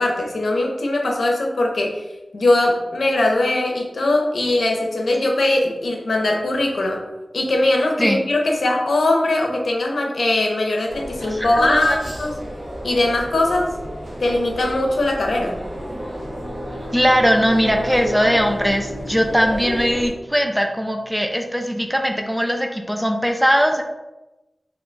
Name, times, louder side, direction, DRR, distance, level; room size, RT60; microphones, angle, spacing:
voice 1, 0.0-2.0 2.3-7.0 7.3-12.3 12.8-13.7 14.2-15.6, left 2 dB, 90° left, 1 dB, 0.5 m, -20 dB
sound 1, 10.9-20.1, equal, 45° right, 1.1 m, -32 dB
voice 2, 11.2-12.0 16.9-23.8, equal, ahead, 4 dB, 0.4 m, -20 dB
Bowed string instrument, 16.0-20.6, left 1 dB, 70° right, 0.5 m, -37 dB
2.7 x 2.1 x 3.9 m, 1.0 s
wide cardioid pair, 65°, 0 cm